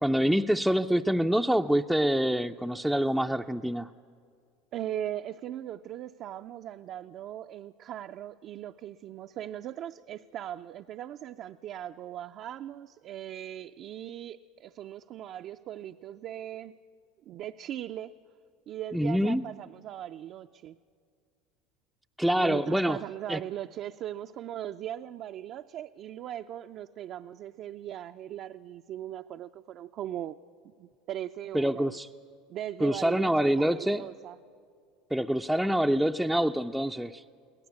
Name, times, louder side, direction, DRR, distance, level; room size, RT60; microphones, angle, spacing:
voice 1, 0.0-3.9 18.9-19.4 22.2-23.0 23.3-23.4 31.5-32.1 32.8-34.1 35.1-37.2, equal, ahead, 2 dB, 0.5 m, -26 dB
voice 2, 4.7-16.8 17.3-18.1 18.7-20.8 22.4-30.4 30.8-31.9 32.5-34.4, right 11 dB, 50° right, 6 dB, 0.5 m, -39 dB
22.5 x 17.5 x 9.5 m, 2.2 s
hypercardioid pair, 80°, 0 cm